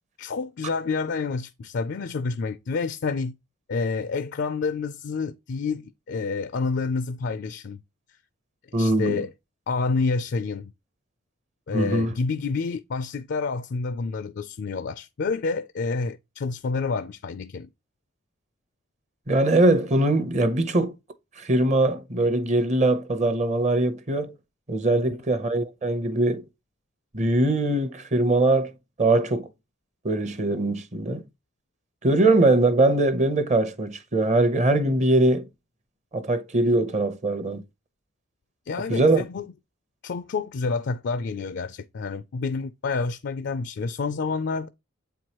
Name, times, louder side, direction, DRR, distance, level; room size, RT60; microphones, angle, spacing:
voice 1, 0.2-3.3 3.7-7.8 8.8-9.3 9.7-10.7 11.7-17.7 38.7-39.5 40.0-44.7, left 4 dB, 55° left, 0.4 m, -28 dB
voice 2, 8.7-9.2 11.7-12.1 19.3-21.0 21.4-24.3 24.7-26.4 27.1-28.7 29.0-29.5 30.0-31.2 32.0-35.5 36.1-37.6 38.9-39.2, right 2 dB, 35° right, 0.8 m, -22 dB
7.9 x 4.6 x 3.0 m
head